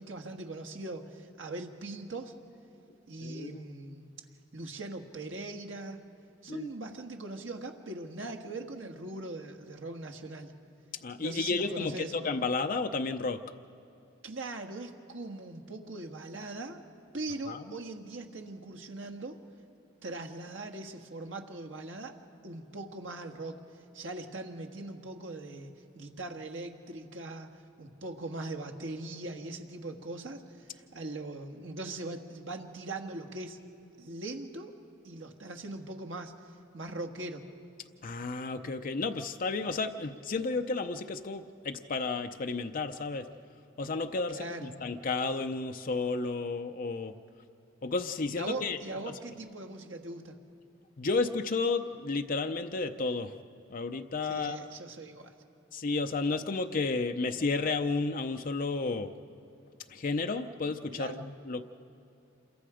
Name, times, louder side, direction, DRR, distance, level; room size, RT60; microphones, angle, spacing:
voice 1, 0.0-2.3 3.1-4.1 4.5-6.0 6.4-10.5 11.2-12.2 14.2-16.8 17.1-19.4 20.0-22.1 22.4-23.6 23.9-27.5 27.8-33.6 34.0-34.7 35.0-37.4 44.3-44.8 48.4-50.3 54.3-55.3 60.9-61.2, right 2 dB, 70° right, 4 dB, 1.6 m, -40 dB
voice 2, 3.2-3.6 6.5-6.7 11.0-13.4 17.5-17.6 38.0-43.3 43.8-47.1 47.8-48.8 51.0-53.3 53.7-54.6 55.7-59.1 59.9-61.6, left 3 dB, 45° left, 6 dB, 0.6 m, -32 dB
27.5 x 22.5 x 5.0 m, 2.8 s
head